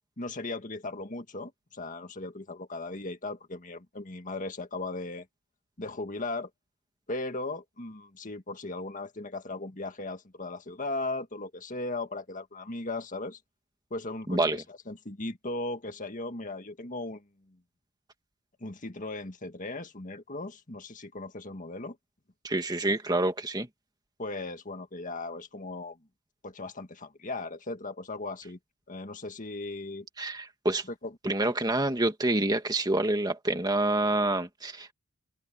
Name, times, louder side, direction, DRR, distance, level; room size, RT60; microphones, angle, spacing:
voice 1, 0.2-5.3 5.8-6.5 7.1-13.4 13.9-17.6 18.6-22.0 24.2-26.0 26.4-28.6 28.9-30.1 31.0-31.2, left 2 dB, 35° left, 1.8 m, -37 dB
voice 2, 22.4-23.7 30.2-30.8 31.2-34.9, right 2 dB, 20° right, 2.0 m, -27 dB
open air
head